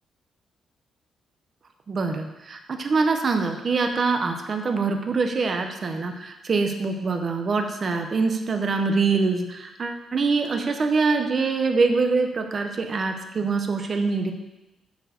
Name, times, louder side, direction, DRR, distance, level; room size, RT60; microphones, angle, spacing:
voice 1, 1.9-14.3, right 4 dB, 30° right, 5 dB, 0.7 m, -24 dB
7.8 x 4.5 x 6.8 m, 0.98 s
cardioid pair, 180°, 0 cm